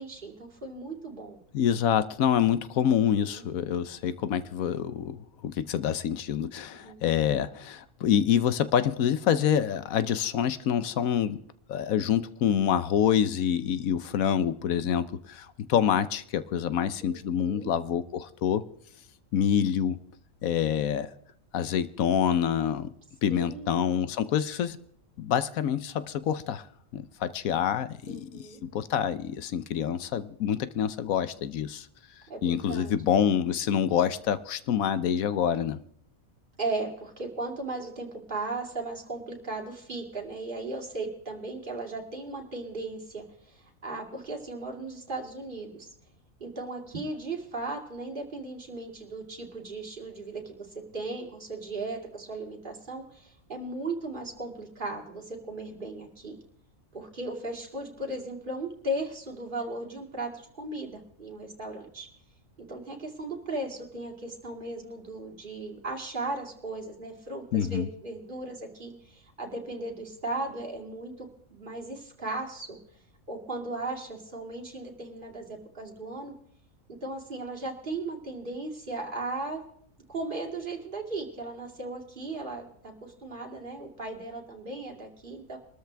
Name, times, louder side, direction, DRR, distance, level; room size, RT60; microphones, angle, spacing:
voice 1, 0.0-1.4 3.2-3.4 6.8-7.0 17.0-17.7 23.3-23.8 28.1-28.6 32.3-32.9 36.6-45.9 46.4-50.7 50.9-56.4 56.9-62.1 62.7-72.8 73.3-76.3 77.0-79.6 80.1-85.6, right 2 dB, 35° right, 0 dB, 2.7 m, -37 dB
voice 2, 1.5-11.4 11.7-18.6 19.3-20.0 20.4-21.1 21.5-22.9 23.2-24.8 25.2-26.7 26.9-31.9 32.4-35.8 67.5-67.9, left 9 dB, 80° left, 14 dB, 1.2 m, -26 dB
23.5 x 13.5 x 3.4 m, 0.68 s
omnidirectional pair, 1.4 m